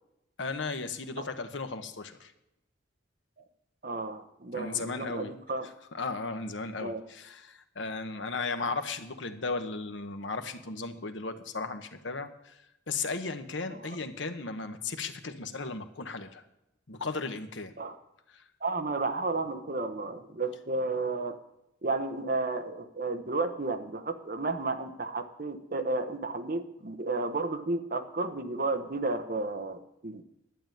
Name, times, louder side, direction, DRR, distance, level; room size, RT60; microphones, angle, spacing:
voice 1, 0.4-2.3 4.5-5.3 5.9-16.4 16.9-17.7 18.3-18.4, left 4 dB, 70° left, 8 dB, 1.1 m, -36 dB
voice 2, 3.8-5.7 6.8-7.0 13.7-14.0 17.8-18.0 18.6-21.4 21.8-30.2, right 3 dB, 45° right, 7 dB, 1.1 m, -32 dB
11.5 x 7.1 x 9.2 m, 0.85 s
head